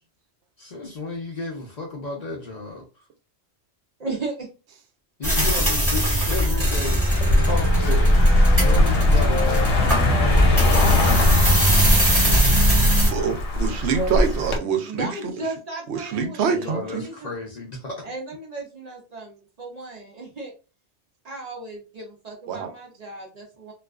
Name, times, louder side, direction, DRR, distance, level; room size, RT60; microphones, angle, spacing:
voice 1, 0.6-3.0 5.2-13.1 16.5-18.1, left 3 dB, 50° left, 0.6 m, -34 dB
voice 2, 4.0-4.5 8.9-9.2 13.9-14.3 14.8-17.3 18.0-20.5 21.2-23.7, right 2 dB, 50° right, 0.5 m, -35 dB
sound 1, 5.2-13.1, equal, 15° right, 1.0 m, -19 dB
Wind instrument woodwind instrument, 5.5-8.8 9.2-13.1, left 3 dB, 10° left, 0.8 m, -37 dB
Car passing by, 7.1-14.6, left 2 dB, 90° left, 1.0 m, -22 dB
voice 3, 13.1-15.1 15.9-17.0 22.5-22.7, right 6 dB, 80° right, 0.8 m, -25 dB
2.3 x 2.3 x 2.3 m
omnidirectional pair, 1.1 m